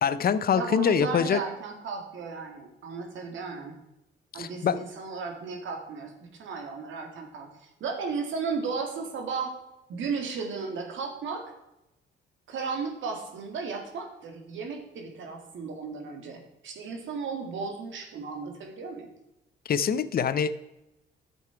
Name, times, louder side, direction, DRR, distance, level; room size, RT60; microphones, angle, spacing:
voice 1, 0.0-1.4 4.3-4.8 19.7-20.5, left 7 dB, 50° left, 14 dB, 0.6 m, -24 dB
voice 2, 0.5-3.8 4.3-9.5 9.9-11.5 12.5-19.1, right 4 dB, 75° right, 3 dB, 2.2 m, -35 dB
10.5 x 7.0 x 4.6 m, 0.91 s
cardioid pair, 90°, 20 cm